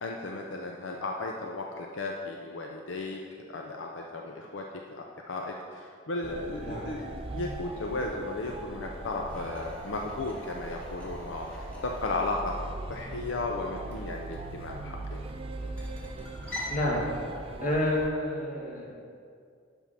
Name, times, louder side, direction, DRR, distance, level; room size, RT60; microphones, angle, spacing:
voice 1, 0.0-3.2 3.5-12.5 12.9-15.2, left 2 dB, 75° left, 1 dB, 0.6 m, -35 dB
sound 1, 6.2-18.1, right 2 dB, 30° right, 0.4 m, -40 dB
sound 2, 9.3-16.8, left 1 dB, 10° left, 1.6 m, -45 dB
voice 2, 16.7-17.1 17.6-19.1, left 1 dB, 40° left, -3 dB, 1.6 m, -29 dB
10.5 x 3.6 x 5.7 m, 2.3 s
head